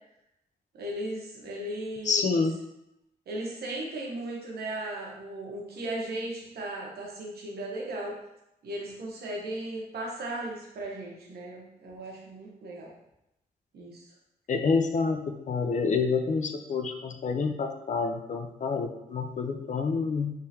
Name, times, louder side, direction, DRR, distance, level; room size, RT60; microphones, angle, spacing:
voice 1, 0.7-2.4 3.3-8.1 8.6-12.9 13.7-14.0, right 1 dB, 80° right, -2 dB, 1.0 m, -36 dB
voice 2, 2.0-2.6 14.5-20.3, left 4 dB, 50° left, 6 dB, 0.5 m, -28 dB
3.6 x 3.3 x 2.8 m, 0.83 s
cardioid pair, 85°, 16 cm